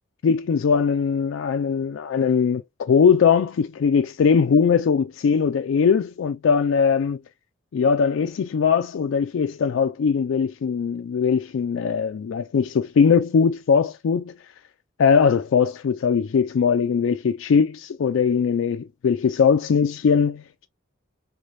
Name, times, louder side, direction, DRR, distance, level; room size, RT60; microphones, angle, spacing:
voice 1, 0.2-7.2 7.7-14.3 15.0-20.7, left 6 dB, 70° left, 0.3 m, -20 dB
3.2 x 2.2 x 2.6 m
head